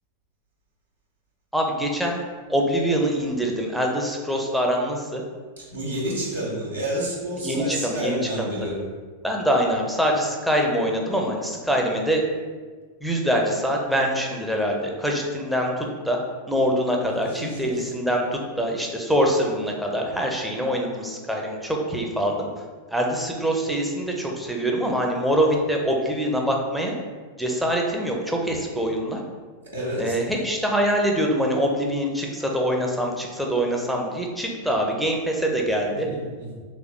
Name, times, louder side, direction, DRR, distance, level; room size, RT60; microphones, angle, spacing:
voice 1, 1.5-2.2 2.5-5.2 7.4-8.7 9.2-12.2 13.0-16.2 16.5-18.2 18.6-22.6 22.9-27.0 27.4-29.2 30.0-36.1, equal, ahead, 0 dB, 0.6 m, -24 dB
voice 2, 5.6-8.9 17.4-17.7 29.7-30.2 35.9-36.5, right 1 dB, 75° right, -5 dB, 0.9 m, -29 dB
3.2 x 3.0 x 3.7 m, 1.5 s
figure-of-eight pair, 90°, 0 cm